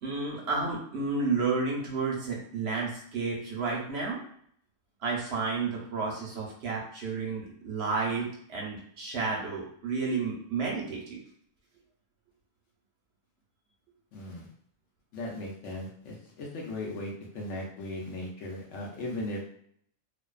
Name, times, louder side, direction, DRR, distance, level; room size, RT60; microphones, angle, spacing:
voice 1, 0.0-4.2 5.0-11.2, right 4 dB, 60° right, -3 dB, 0.8 m, -31 dB
voice 2, 14.1-14.5 15.1-19.5, left 1 dB, 70° left, -1 dB, 1.0 m, -37 dB
2.5 x 2.2 x 2.3 m, 0.63 s
omnidirectional pair, 1.3 m